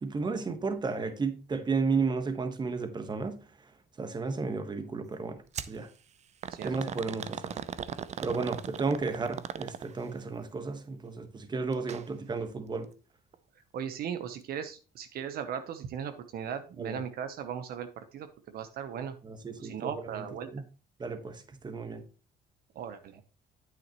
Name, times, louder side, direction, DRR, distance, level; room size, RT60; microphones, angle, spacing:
voice 1, 0.0-3.4 4.0-5.4 5.7-5.9 6.6-7.6 8.2-12.9 16.8-16.9 19.2-19.7 20.5-20.6 21.0-22.0, right 4 dB, 25° right, 1.3 m, -33 dB
sound 1, 5.5-5.8 6.4-10.1 11.7-12.0 12.4-12.5 13.3-13.4, right 8 dB, 40° right, 0.6 m, -38 dB
voice 2, 6.5-6.9 13.7-19.2 19.6-20.5 22.7-23.2, right 8 dB, 65° right, 0.9 m, -38 dB
9.3 x 7.7 x 3.0 m
cardioid pair, 110°, 17 cm